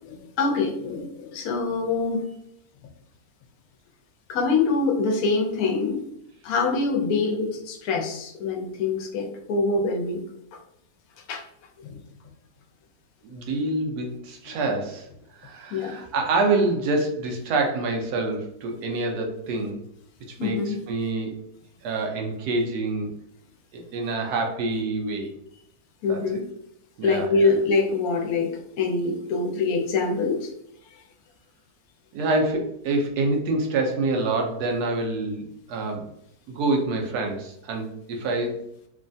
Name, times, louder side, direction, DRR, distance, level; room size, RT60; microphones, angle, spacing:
voice 1, 0.0-2.2 4.3-6.0 6.4-10.3 11.3-11.4 11.8-12.0 15.7-16.0 20.4-20.8 26.0-26.4 27.0-30.5, left 4 dB, 75° left, 3 dB, 1.0 m, -25 dB
voice 2, 13.2-15.1 15.3-19.8 20.3-21.4 21.8-23.1 23.7-25.3 26.1-26.4 27.0-27.5 32.1-36.1 36.5-38.6, right 2 dB, 85° right, 2 dB, 1.2 m, -26 dB
3.1 x 2.2 x 2.5 m, 0.75 s
omnidirectional pair, 1.6 m